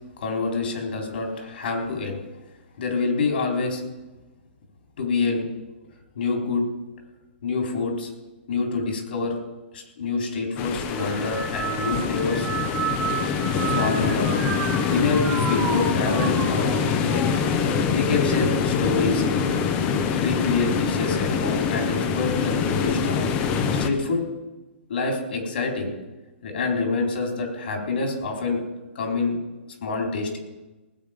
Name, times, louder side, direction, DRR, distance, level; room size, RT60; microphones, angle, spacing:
voice 1, 0.2-2.2 2.8-3.8 5.0-5.5 6.2-6.6 7.4-8.1 8.5-9.3 9.7-12.5 13.6-14.4 14.9-16.8 17.9-19.2 20.1-23.3 23.7-24.2 24.9-25.9 26.4-28.6 28.9-29.4 29.8-30.4, left 4 dB, 55° left, 1 dB, 4.1 m, -26 dB
sound 1, 10.6-23.9, left 6 dB, 20° left, 0.8 m, -24 dB
sound 2, 10.9-20.5 21.0-21.6 22.5-22.9, right 5 dB, 10° right, 1.3 m, -33 dB
19.5 x 8.6 x 5.2 m, 1.1 s
hypercardioid pair, 170°, 7 cm